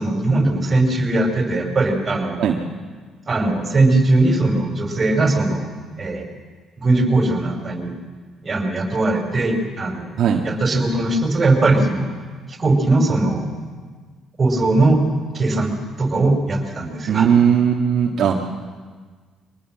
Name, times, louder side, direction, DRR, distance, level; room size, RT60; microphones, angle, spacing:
voice 1, 0.0-2.4 3.3-5.7 6.0-6.3 6.8-7.9 8.4-10.1 10.4-12.1 12.6-13.5 14.4-15.0 15.3-17.3, right 2 dB, 30° right, 3 dB, 5.2 m, -19 dB
voice 2, 17.1-18.4, right 8 dB, 65° right, 0 dB, 1.7 m, -17 dB
24.0 x 19.0 x 7.5 m, 1.5 s
cardioid pair, 95°, 0 cm